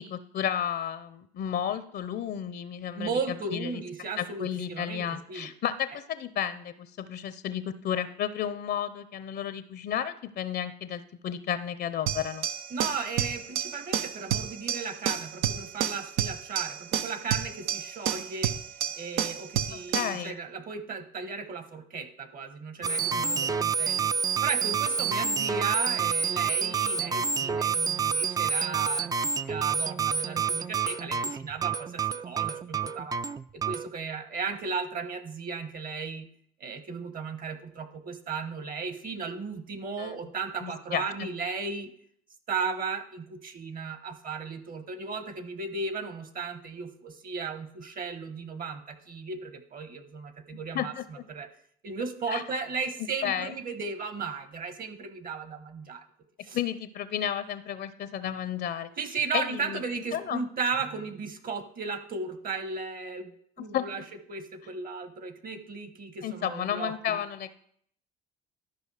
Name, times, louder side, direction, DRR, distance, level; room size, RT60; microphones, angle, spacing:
voice 1, 0.0-3.8 4.2-12.5 19.9-20.4 40.0-40.3 40.6-41.3 50.7-51.0 52.3-52.4 53.2-53.5 56.5-58.9 59.3-59.8 60.1-60.4 63.6-63.9 66.2-67.5, left 9 dB, 55° left, 13 dB, 0.7 m, -32 dB
voice 2, 2.9-5.5 12.7-18.6 18.9-24.1 24.4-33.1 33.5-36.3 36.6-41.9 42.5-51.5 51.8-56.0 56.4-56.6 59.0-64.0 64.3-67.2, right 4 dB, 45° right, 11 dB, 1.2 m, -35 dB
sound 1, 12.1-20.2, right 9 dB, 80° right, 0.6 m, -30 dB
sound 2, 22.8-33.9, right 6 dB, 20° right, 0.4 m, -28 dB
12.5 x 5.1 x 4.9 m, 0.66 s
supercardioid pair, 80°, 20 cm